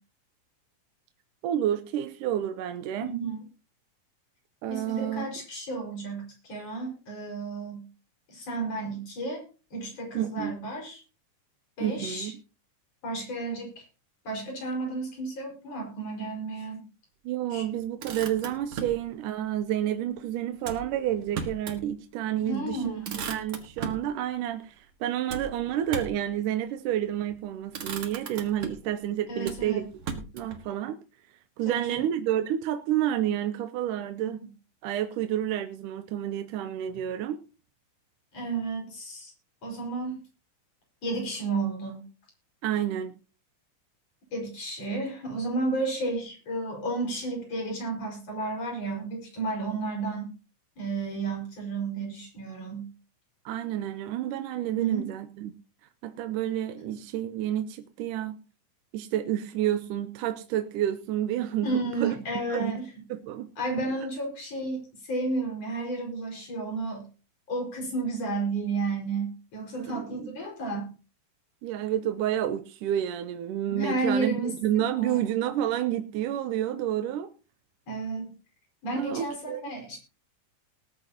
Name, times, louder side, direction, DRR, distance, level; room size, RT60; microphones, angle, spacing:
voice 1, 1.4-3.1 4.6-5.3 10.1-10.7 11.8-12.3 17.3-29.8 30.3-31.0 31.6-34.4 34.8-37.4 42.6-43.1 53.5-55.5 56.0-58.4 58.9-62.1 62.5-62.8 63.1-63.5 69.8-70.4 71.6-77.3 79.0-79.7, right 11 dB, 80° right, 8 dB, 2.3 m, -30 dB
voice 2, 3.0-3.4 4.7-7.8 8.3-9.4 9.7-11.0 11.8-12.3 13.0-13.8 14.2-16.8 17.5-17.6 22.4-23.2 29.3-29.9 31.7-32.0 34.2-34.3 38.3-39.3 39.6-40.2 41.0-42.0 44.3-50.3 50.8-52.9 54.7-55.1 56.8-56.9 61.6-62.9 63.6-67.0 67.5-70.9 73.7-74.5 75.0-75.2 77.9-78.4 78.8-80.0, right 3 dB, 50° left, 1 dB, 6.3 m, -32 dB
Motor vehicle (road), 17.8-19.0 20.6-21.8 22.2-22.3 22.7-24.1 25.3-26.3 27.1-27.4 27.7-28.9 29.4-30.6, right 5 dB, 50° right, 2.4 m, -37 dB
19.0 x 10.5 x 2.9 m, 0.34 s
omnidirectional pair, 3.7 m